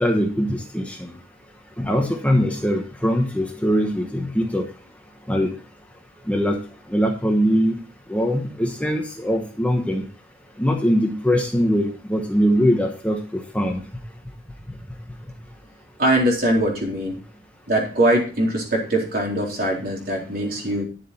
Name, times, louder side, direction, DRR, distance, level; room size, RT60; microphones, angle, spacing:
voice 1, 0.0-1.1 1.8-4.6 5.3-5.5 6.3-6.6 6.9-7.8 8.1-10.0 10.6-13.8, equal, 5° left, 2 dB, 1.1 m, -21 dB
voice 2, 16.0-17.2 17.7-20.8, right 1 dB, 50° right, -1 dB, 3.8 m, -22 dB
11.0 x 7.4 x 4.3 m, 0.37 s
head